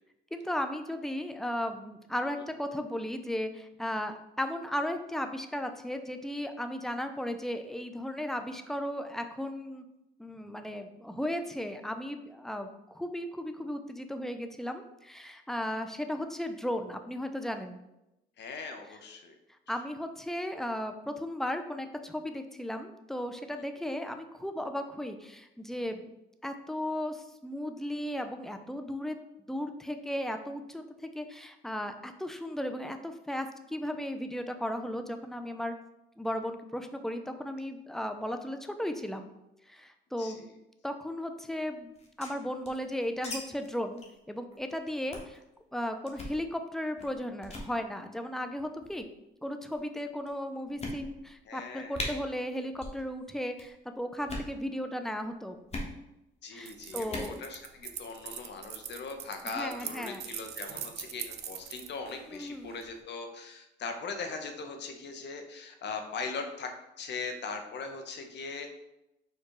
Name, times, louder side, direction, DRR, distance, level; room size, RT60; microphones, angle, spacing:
voice 1, 0.3-9.8 10.2-17.8 19.7-26.1 26.4-29.2 29.5-35.8 36.2-39.3 39.7-40.5 40.8-41.9 42.2-45.4 45.7-49.1 49.4-55.6 56.5-57.4 59.4-60.2 62.3-62.8, left 1 dB, ahead, 7 dB, 0.4 m, -35 dB
voice 2, 18.4-19.4 40.2-40.5 51.5-52.0 56.4-66.7 67.0-68.7, left 4 dB, 60° left, 5 dB, 0.7 m, -40 dB
sound 1, 41.9-43.4 43.6-43.7 44.0-44.2 44.5-44.7 45.1-45.4 46.1-46.4 47.0-47.2 47.4-47.7 48.6-49.0 49.7-49.8 50.3-50.4 50.8-51.3 51.6-51.7 51.9-52.1 52.7-53.0 53.3-53.7 54.2-54.5 55.7-55.9 57.0-57.3, left 2 dB, 35° left, 1.0 m, -38 dB
sound 2, 56.6-62.9, right 9 dB, 55° right, 0.4 m, -42 dB
4.5 x 2.3 x 4.7 m, 0.90 s
cardioid pair, 90°, 20 cm